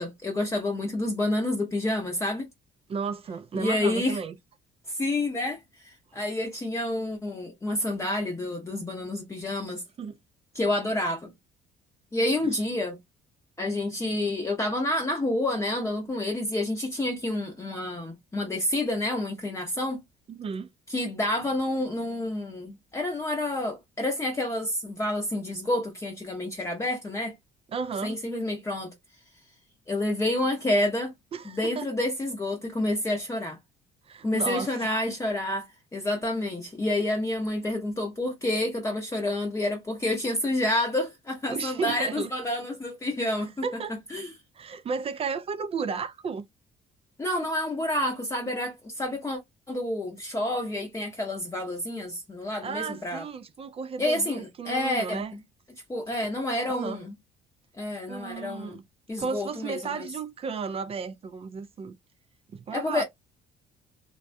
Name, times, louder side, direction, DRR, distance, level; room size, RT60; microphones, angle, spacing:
voice 1, 0.0-2.5 3.6-4.2 4.9-9.8 10.5-11.3 12.1-13.0 13.6-20.0 20.9-27.3 28.0-28.9 29.9-31.1 31.5-33.6 34.2-43.5 44.1-44.3 47.2-49.4 49.7-53.2 54.0-55.2 55.9-57.1 57.8-58.8 59.1-60.1 62.7-63.0, left 1 dB, 15° left, 0.7 m, -29 dB
voice 2, 2.9-4.4 6.1-6.2 10.0-10.2 12.4-12.5 20.3-20.7 27.7-28.2 31.3-31.9 34.0-35.0 41.5-42.3 43.2-44.0 44.5-46.5 52.6-55.3 56.7-57.0 58.1-58.8 59.2-62.0 62.5-63.0, right 5 dB, 35° right, 0.4 m, -34 dB
3.4 x 2.2 x 2.5 m
cardioid pair, 110°, 17 cm